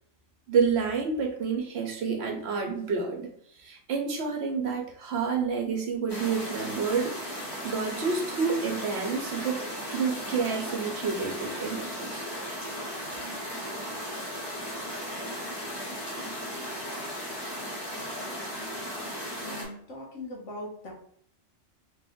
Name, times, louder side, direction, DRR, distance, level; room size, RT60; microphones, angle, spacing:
voice 1, 0.5-9.6 9.9-12.3, right 5 dB, 65° right, 3 dB, 0.9 m, -29 dB
sound 1, 6.1-19.6, equal, 20° left, 0.9 m, -36 dB
voice 2, 19.4-20.9, left 1 dB, 75° left, -1 dB, 1.4 m, -40 dB
3.3 x 2.5 x 3.5 m, 0.66 s
omnidirectional pair, 1.3 m